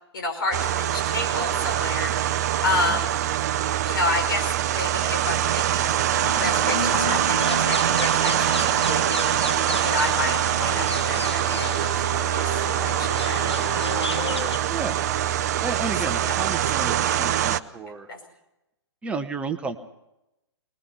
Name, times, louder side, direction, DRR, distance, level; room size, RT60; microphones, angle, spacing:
voice 1, 0.1-2.2 2.6-3.2 3.8-6.0 6.3-9.4 9.8-13.5 14.0-14.3 15.8-16.3 16.8-17.4 18.1-18.2, left 2 dB, 55° left, 5 dB, 5.5 m, -30 dB
Fan Running (Ambient Omni), 0.5-17.6, right 11 dB, 40° right, 0.7 m, -24 dB
sound 1, 6.1-14.6, left 3 dB, 80° left, 1.4 m, -32 dB
voice 2, 14.4-15.0 15.6-18.1 19.0-19.8, right 4 dB, 10° right, 6 dB, 1.2 m, -32 dB
23.5 x 20.5 x 5.7 m, 0.90 s
figure-of-eight pair, 125°, 14 cm